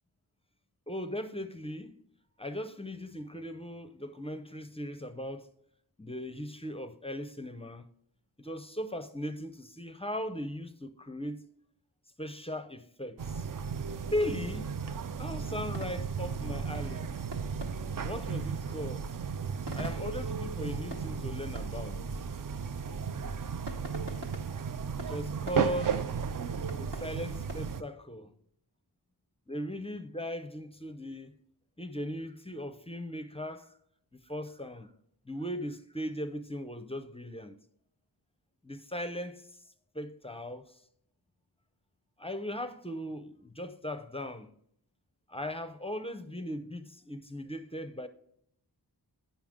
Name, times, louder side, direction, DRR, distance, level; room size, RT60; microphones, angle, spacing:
voice 1, 0.9-2.0 2.4-5.5 6.0-7.9 8.4-11.5 12.2-13.4 14.1-14.7 15.2-17.1 18.0-19.1 19.7-22.0 25.0-26.0 26.8-28.3 29.5-31.3 31.8-33.7 34.1-34.9 35.3-37.6 38.6-39.5 39.9-40.6 42.2-44.5 45.3-48.1, equal, 15° left, 0.5 m, -38 dB
newyears fireworkscracklesome, 13.2-27.8, right 6 dB, 50° right, 0.5 m, -35 dB
sound 1, 14.6-27.5, right 1 dB, 70° right, 1.2 m, -47 dB
8.8 x 5.6 x 3.6 m
wide cardioid pair, 70°, 43 cm